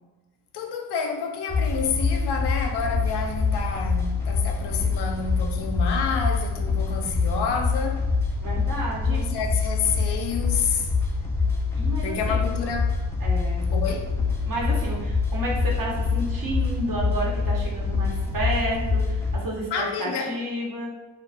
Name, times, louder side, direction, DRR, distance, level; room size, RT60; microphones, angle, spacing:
voice 1, 0.5-8.0 9.1-10.9 12.0-12.9 13.7-14.2 19.7-20.3, left 6 dB, 60° left, 3 dB, 0.5 m, -29 dB
sound 1, 1.5-19.4, left 4 dB, 5° left, 0.5 m, -25 dB
voice 2, 8.4-9.3 11.7-12.4 13.2-13.7 14.4-20.9, right 1 dB, 45° right, -4 dB, 1.1 m, -31 dB
2.3 x 2.3 x 3.4 m, 1.2 s
cardioid pair, 70°, 45 cm